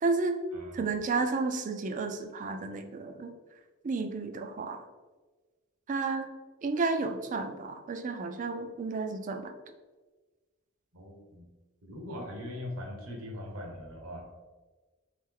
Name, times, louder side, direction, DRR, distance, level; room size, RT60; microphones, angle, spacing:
voice 1, 0.0-0.4 0.7-3.3 3.8-4.8 5.9-6.3 6.6-9.5, right 3 dB, 35° right, 7 dB, 0.3 m, -32 dB
voice 2, 0.5-0.9 10.9-11.5 11.8-14.3, left 1 dB, 80° right, 0 dB, 0.9 m, -41 dB
3.6 x 3.1 x 3.7 m, 1.3 s
head